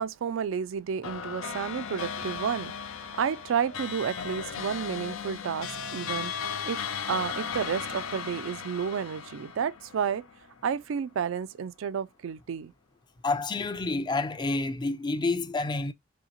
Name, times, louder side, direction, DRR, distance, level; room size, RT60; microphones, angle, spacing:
voice 1, 0.0-6.8 7.1-10.2 10.6-12.7, right 7 dB, 75° right, 0.4 m, -31 dB
sound 1, 1.0-10.7, left 7 dB, 85° left, 0.5 m, -36 dB
sound 2, 3.7-4.9 6.1-8.3, left 4 dB, 60° left, 0.8 m, -51 dB
voice 2, 13.2-15.9, left 3 dB, 20° left, 0.4 m, -29 dB
5.5 x 2.8 x 2.8 m
head